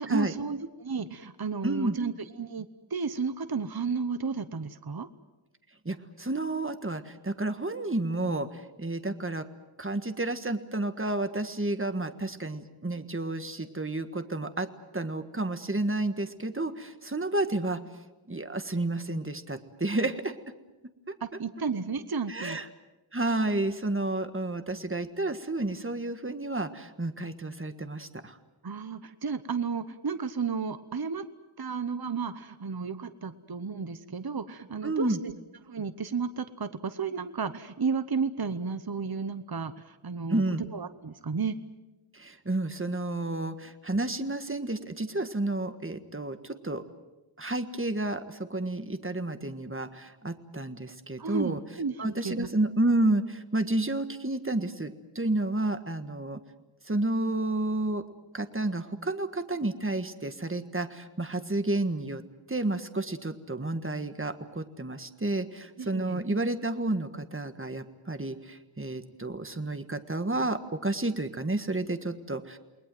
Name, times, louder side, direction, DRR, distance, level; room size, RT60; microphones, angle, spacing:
voice 1, 0.0-5.1 21.2-22.6 28.6-31.3 31.6-35.3 35.6-41.6 51.2-52.5 65.8-66.2, right 5 dB, 50° right, 12 dB, 1.0 m, -33 dB
voice 2, 1.6-2.0 5.8-9.4 9.8-14.7 14.9-17.8 18.3-20.3 22.3-22.7 23.1-28.4 34.8-35.2 40.3-40.6 42.1-46.8 47.4-51.6 52.0-56.4 56.8-58.0 58.3-62.2 62.5-72.6, right 2 dB, 25° right, 9 dB, 1.6 m, -31 dB
29.0 x 20.5 x 7.8 m, 1.1 s
wide cardioid pair, 50°, 49 cm